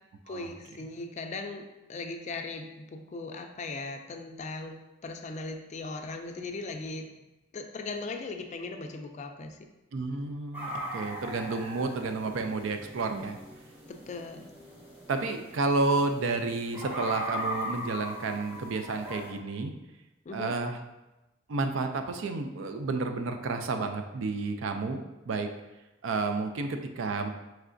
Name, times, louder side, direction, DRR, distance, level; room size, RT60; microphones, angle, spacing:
voice 1, 0.3-1.6 1.9-7.1 7.5-9.6 13.9-14.5 20.3-20.5, left 3 dB, 35° left, 5 dB, 0.3 m, -38 dB
voice 2, 9.9-13.4 15.1-19.7 20.3-20.8 21.5-25.5 26.0-27.3, right 3 dB, 75° right, 6 dB, 0.4 m, -31 dB
sound 1, 10.5-19.3, equal, 10° right, 0.8 m, -39 dB
4.6 x 3.2 x 2.5 m, 1.0 s
head